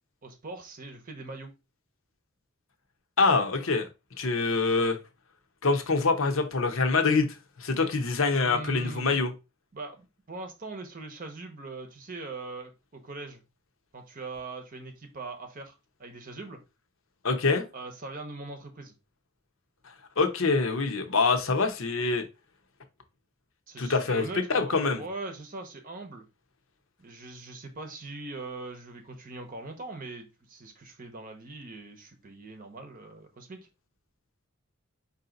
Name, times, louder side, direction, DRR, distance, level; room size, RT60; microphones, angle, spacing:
voice 1, 0.2-1.5 8.3-9.2 9.7-13.4 13.9-15.7 16.0-16.6 17.7-19.0 23.7-26.3 27.0-33.7, right 3 dB, 40° right, 5 dB, 0.8 m, -41 dB
voice 2, 3.2-3.9 4.2-5.0 5.6-7.3 7.6-9.3 17.2-17.6 20.2-22.2 23.8-24.2 24.5-25.0, left 4 dB, 70° left, 6 dB, 0.8 m, -25 dB
4.8 x 2.7 x 3.8 m, 0.27 s
head